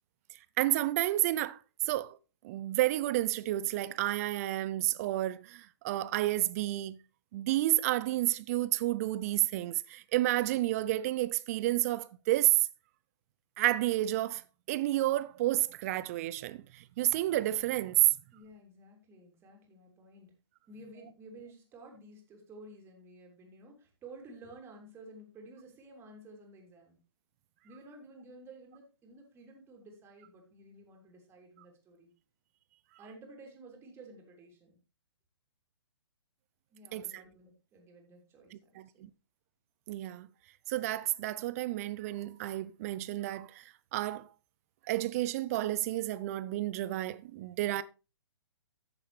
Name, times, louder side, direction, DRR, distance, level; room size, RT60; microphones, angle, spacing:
voice 1, 0.6-1.6 1.9-2.2 2.4-7.0 7.3-12.7 13.6-18.1 36.9-37.2 38.5-39.1 39.9-40.3 40.7-44.3 44.9-47.8, right 16 dB, 35° right, 0.6 m, -30 dB
voice 2, 18.3-20.4 20.7-27.0 27.6-32.1 33.0-34.8 36.7-39.1, right 2 dB, 15° right, 3.1 m, -53 dB
14.5 x 6.7 x 3.3 m
figure-of-eight pair, 125°, 14 cm